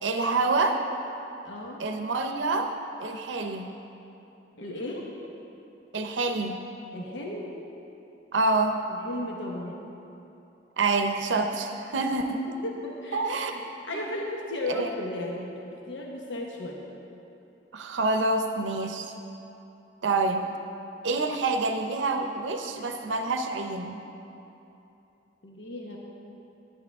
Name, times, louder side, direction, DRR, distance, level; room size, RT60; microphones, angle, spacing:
voice 1, 0.0-0.8 1.8-2.7 3.0-3.7 5.9-6.6 8.3-8.8 10.8-12.4 13.1-13.6 13.9-14.0 14.8-14.9 17.7-19.1 20.0-20.5 21.0-24.0, right 3 dB, 85° right, 5 dB, 0.6 m, -27 dB
voice 2, 1.4-1.8 4.6-5.0 6.9-7.5 8.9-9.8 11.9-12.1 12.6-16.8 25.4-26.0, left 1 dB, 85° left, -1 dB, 1.0 m, -35 dB
11.0 x 10.5 x 3.5 m, 2.9 s
head